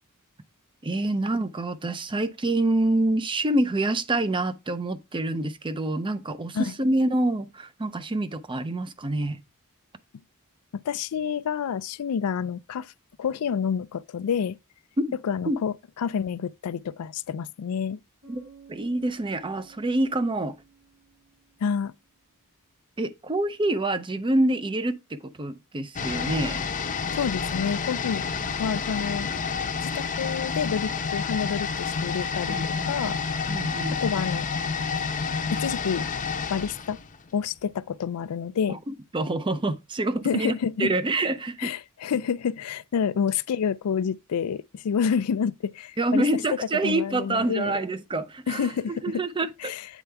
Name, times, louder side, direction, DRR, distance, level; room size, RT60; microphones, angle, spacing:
voice 1, 0.8-9.4 15.0-15.2 15.5-15.6 18.3-18.4 18.7-20.6 23.0-26.6 32.5-33.2 33.5-34.0 38.7-38.8 39.1-40.5 40.8-41.7 46.0-49.7, right 2 dB, 20° right, 0.6 m, -26 dB
voice 2, 10.9-12.9 13.2-14.6 15.2-18.0 21.6-21.9 27.1-28.2 28.6-29.3 29.8-33.2 33.9-34.5 35.5-36.1 36.5-37.0 37.3-38.8 40.2-40.9 41.6-46.2 46.8-47.7 48.5-49.2 49.6-49.9, left 7 dB, 75° left, 0.4 m, -28 dB
Bass guitar, 18.2-22.1, right 6 dB, 80° right, 5.0 m, -54 dB
sound 1, 26.0-37.7 38.0-38.1, left 5 dB, 35° left, 0.7 m, -29 dB
8.2 x 4.4 x 3.4 m
head